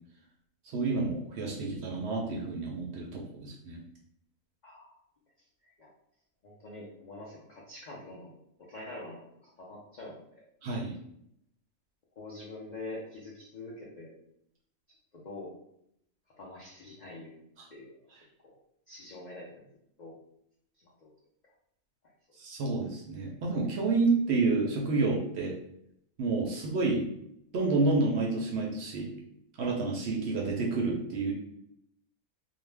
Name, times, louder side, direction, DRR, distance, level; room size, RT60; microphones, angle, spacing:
voice 1, 0.7-3.8 10.6-10.9 17.6-17.7 22.4-25.6 26.2-27.1 27.5-29.1 29.6-31.3, right 3 dB, 65° right, -2 dB, 0.7 m, -29 dB
voice 2, 4.6-5.0 5.8-5.9 6.4-8.3 8.7-10.4 12.2-14.1 15.2-15.5 16.4-17.4 17.7-17.9 18.4-18.5 18.9-19.5 20.0-20.1 20.8-21.1, left 2 dB, 75° left, -4 dB, 0.4 m, -45 dB
2.5 x 2.1 x 3.2 m, 0.75 s
omnidirectional pair, 1.4 m